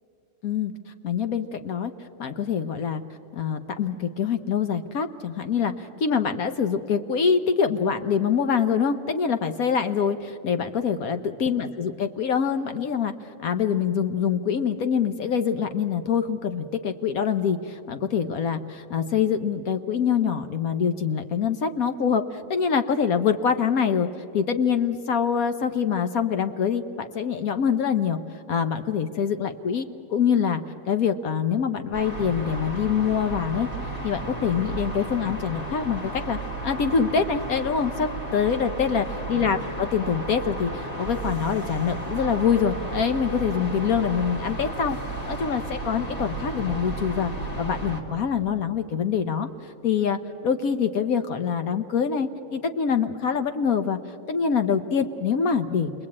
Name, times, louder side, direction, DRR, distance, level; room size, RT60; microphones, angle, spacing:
voice 1, 1.0-1.9 2.2-3.0 3.3-13.1 13.4-24.1 24.3-28.2 28.5-30.6 30.9-33.7 34.0-45.0 45.3-47.3 47.6-49.5 49.8-50.2 50.4-54.0 54.3-55.9, left 7 dB, 65° left, 8 dB, 0.9 m, -25 dB
sound 1, 31.9-48.0, right 2 dB, 25° left, 2.2 m, -33 dB
28.0 x 22.0 x 8.6 m, 2.9 s
omnidirectional pair, 2.3 m